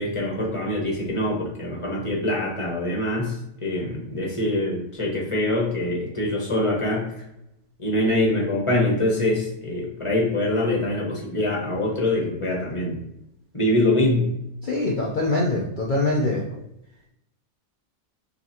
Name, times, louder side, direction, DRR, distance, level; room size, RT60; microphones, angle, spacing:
voice 1, 0.0-3.4 3.6-7.1 7.8-13.0 13.5-14.3, left 1 dB, 25° left, -2 dB, 1.1 m, -24 dB
voice 2, 14.6-16.4, left 2 dB, 50° left, -2 dB, 0.6 m, -23 dB
7.4 x 2.6 x 2.7 m, 0.83 s
omnidirectional pair, 1.4 m